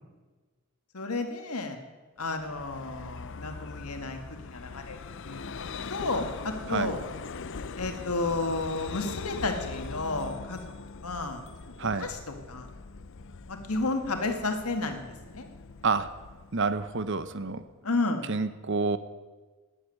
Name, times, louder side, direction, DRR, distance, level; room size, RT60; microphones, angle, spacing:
voice 1, 0.9-1.8 2.2-5.0 5.3-7.0 7.8-10.6 11.0-12.7 13.5-15.5 17.8-18.3, left 3 dB, 90° left, 5 dB, 1.9 m, -32 dB
Vehicle, 2.3-17.7, left 4 dB, 60° left, 0.6 m, -42 dB
voice 2, 11.8-12.1 15.8-16.1 16.5-17.6 18.3-19.0, right 4 dB, 55° right, 13 dB, 0.8 m, -28 dB
12.0 x 10.0 x 9.4 m, 1.3 s
head